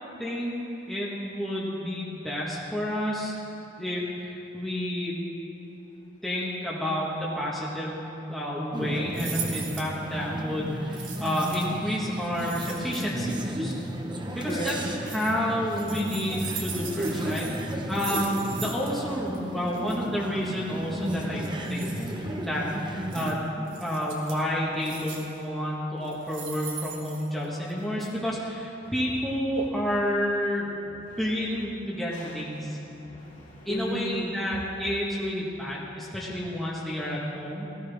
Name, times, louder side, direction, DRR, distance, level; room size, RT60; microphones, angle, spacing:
voice 1, 0.2-0.6 0.9-3.3 3.8-5.1 6.2-8.0 8.3-13.7 14.3-14.7 15.0-21.9 22.3-30.7 31.2-32.8 33.6-37.7, equal, ahead, -7 dB, 1.5 m, -30 dB
sound 1, 8.7-23.3, right 1 dB, 25° right, 1.0 m, -33 dB
sound 2, 9.1-9.9 10.9-11.8 12.3-13.3 14.4-15.3 15.7-19.0 19.3-19.4 19.7-20.0 21.1-22.1 23.1-23.3 23.7-24.4 24.8-25.4 26.0-27.7 28.0-28.1, right 7 dB, 85° right, 1.8 m, -39 dB
voice 2, 14.4-14.8 28.8-29.2 30.8-31.4 32.1-34.6, equal, 40° left, -6 dB, 3.1 m, -37 dB
18.0 x 14.5 x 3.5 m, 2.9 s
head